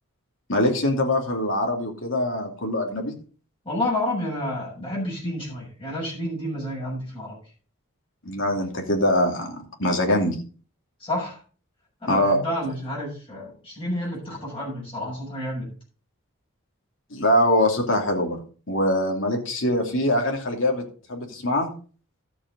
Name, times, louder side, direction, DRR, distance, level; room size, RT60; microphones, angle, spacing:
voice 1, 0.5-3.2 8.2-10.4 12.1-12.4 17.1-18.4 18.7-21.7, left 1 dB, 60° left, 2 dB, 2.8 m, -23 dB
voice 2, 3.7-7.3 11.0-11.4 12.0-15.7, left 1 dB, 25° left, -5 dB, 6.9 m, -30 dB
13.0 x 7.7 x 4.0 m, 0.39 s
head